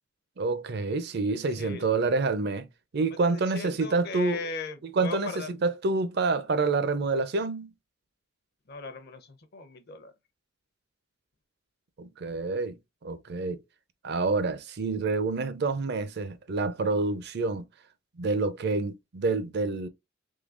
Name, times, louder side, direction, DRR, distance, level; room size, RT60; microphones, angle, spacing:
voice 1, 0.4-2.7 2.9-4.4 4.8-7.7 12.0-12.7 13.0-13.6 14.0-17.7 18.2-19.9, right 3 dB, 55° right, 0.5 m, -27 dB
voice 2, 1.4-1.8 3.0-5.5 8.7-10.1 14.1-14.2, left 4 dB, 50° left, 0.7 m, -39 dB
3.7 x 3.1 x 2.4 m
head